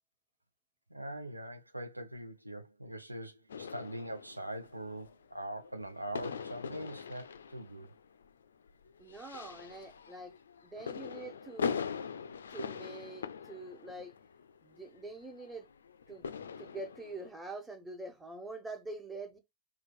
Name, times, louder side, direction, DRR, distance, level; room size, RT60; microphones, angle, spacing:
voice 1, 0.9-7.9, right 1 dB, 90° right, 0.5 m, -42 dB
sound 1, 3.5-17.3, left 6 dB, 70° left, 0.4 m, -42 dB
voice 2, 9.0-10.3 10.6-11.8 12.5-14.1 14.6-15.7 16.1-16.3 16.6-19.4, right 2 dB, 10° right, 1.3 m, -45 dB
4.5 x 2.3 x 4.8 m
figure-of-eight pair, 90°, 0 cm